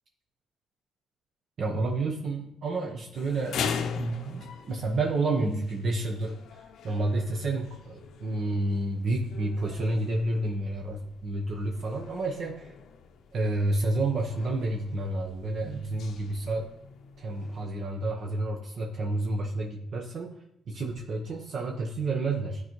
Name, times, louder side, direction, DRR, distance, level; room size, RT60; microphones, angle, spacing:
voice 1, 1.6-3.6 3.9-12.7 13.3-16.7 17.2-20.3 20.7-22.6, right 2 dB, 60° right, 1 dB, 0.9 m, -30 dB
sound 1, 3.1-17.7, left 6 dB, 75° left, 0.6 m, -41 dB
10.5 x 3.9 x 3.1 m, 0.75 s
cardioid pair, 90°, 0 cm